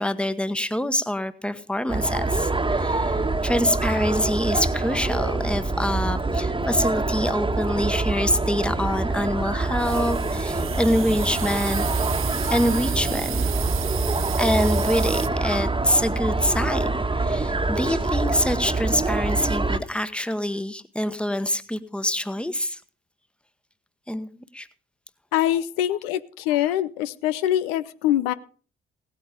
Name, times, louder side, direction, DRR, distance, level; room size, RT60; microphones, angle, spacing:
voice 1, 0.0-11.8 12.5-13.4 14.4-22.8 24.1-24.7, left 1 dB, 5° left, 12 dB, 1.1 m, -25 dB
sound 1, 1.9-19.8, right 2 dB, 15° right, 1.4 m, -25 dB
sound 2, 9.8-15.3, right 10 dB, 45° right, 0.7 m, -34 dB
voice 2, 25.3-28.3, left 12 dB, 75° left, 14 dB, 0.6 m, -24 dB
17.0 x 8.9 x 5.1 m, 0.40 s
hypercardioid pair, 45°, 30 cm